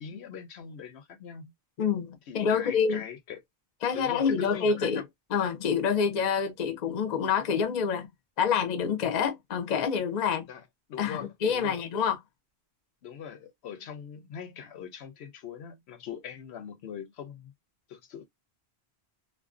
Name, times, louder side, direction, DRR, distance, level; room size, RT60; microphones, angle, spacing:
voice 1, 0.0-1.5 2.3-3.4 3.9-5.0 10.5-10.6 10.9-11.8 13.0-17.5 17.9-18.3, left 8 dB, 80° left, 0.9 m, -41 dB
voice 2, 1.8-3.1 3.8-5.0 5.3-8.1 8.4-10.5 11.0-12.2, left 6 dB, 50° left, 0.6 m, -27 dB
2.5 x 2.1 x 2.4 m
omnidirectional pair, 1.1 m